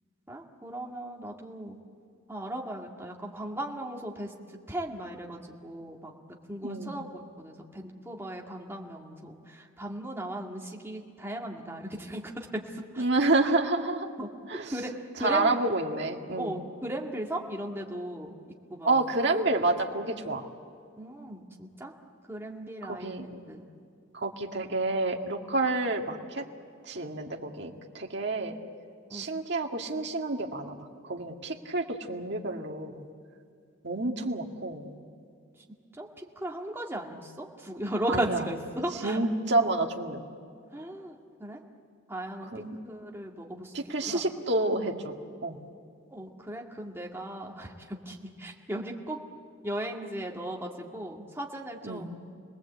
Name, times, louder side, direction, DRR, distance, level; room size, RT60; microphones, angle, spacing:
voice 1, 0.3-1.8 2.3-4.3 4.7-6.1 6.5-13.0 14.2-14.3 14.7-15.6 16.4-18.4 18.7-19.0 21.0-21.9 22.3-23.6 29.1-29.3 35.9-39.2 40.7-41.6 42.1-43.7 44.0-44.3 46.1-49.2 49.6-52.2, right 1 dB, 10° right, -1 dB, 2.2 m, -37 dB
voice 2, 6.6-6.9 13.0-14.1 14.5-14.7 15.2-16.5 18.8-20.5 22.8-23.2 24.1-26.4 26.8-28.5 29.1-30.8 31.0-33.0 33.8-34.9 38.1-38.5 39.0-40.2 42.5-42.8 43.7-45.1 45.4-45.6 51.8-52.1, right 2 dB, 60° right, 1 dB, 2.0 m, -29 dB
29.5 x 20.0 x 8.2 m, 2.3 s
head